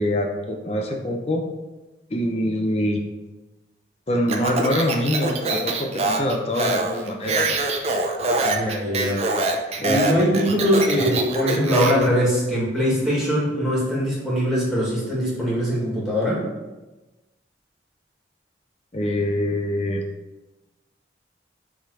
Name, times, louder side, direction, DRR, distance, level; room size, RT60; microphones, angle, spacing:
voice 1, 0.0-1.4 2.1-3.0 4.1-7.5 9.8-10.0 18.9-20.0, left 1 dB, 35° left, 2 dB, 0.6 m, -24 dB
Speech, 4.3-12.1, right 2 dB, 35° right, 0.7 m, -24 dB
voice 2, 8.4-9.2 9.8-16.4, equal, ahead, -6 dB, 2.1 m, -22 dB
7.4 x 3.6 x 4.9 m, 1.1 s
head